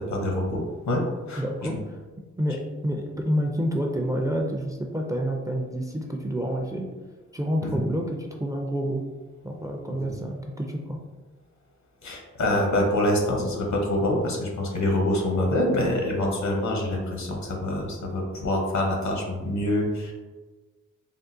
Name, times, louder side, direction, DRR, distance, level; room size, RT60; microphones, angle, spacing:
voice 1, 0.1-1.0 1.3-1.8 7.6-7.8 9.9-10.1 12.0-20.1, left 1 dB, 70° left, 0 dB, 0.8 m, -26 dB
voice 2, 1.4-2.0 2.4-6.9 7.3-9.0 9.4-11.0, equal, 10° right, 1 dB, 0.4 m, -28 dB
3.6 x 2.1 x 2.6 m, 1.3 s
cardioid pair, 65°, 30 cm